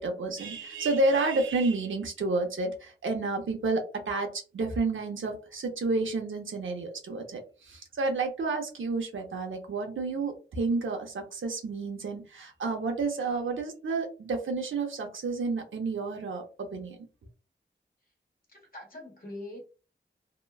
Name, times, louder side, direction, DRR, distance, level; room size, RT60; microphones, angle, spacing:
voice 1, 0.0-17.0, right 3 dB, 80° right, 3 dB, 0.7 m, -30 dB
voice 2, 18.5-19.6, left 1 dB, 50° left, -1 dB, 1.4 m, -43 dB
2.9 x 2.1 x 2.3 m, 0.33 s
cardioid pair, 55°, 20 cm